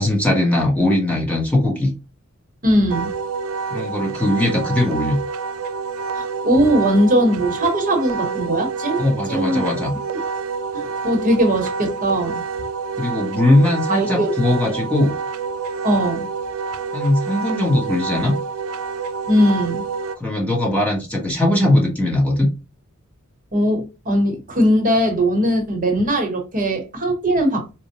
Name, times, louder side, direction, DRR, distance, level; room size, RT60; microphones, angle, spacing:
voice 1, 0.0-1.9 3.7-5.2 9.0-9.9 13.0-15.1 16.9-18.3 20.2-22.5, left 1 dB, 5° left, 0.9 m, -19 dB
voice 2, 2.6-3.1 6.2-9.6 10.7-12.4 13.9-14.3 15.8-16.3 19.3-19.8 23.5-27.6, equal, 40° right, 0.9 m, -19 dB
Wind instrument woodwind instrument, 2.9-20.2, right 5 dB, 85° right, 0.4 m, -28 dB
4.2 x 2.0 x 2.8 m
head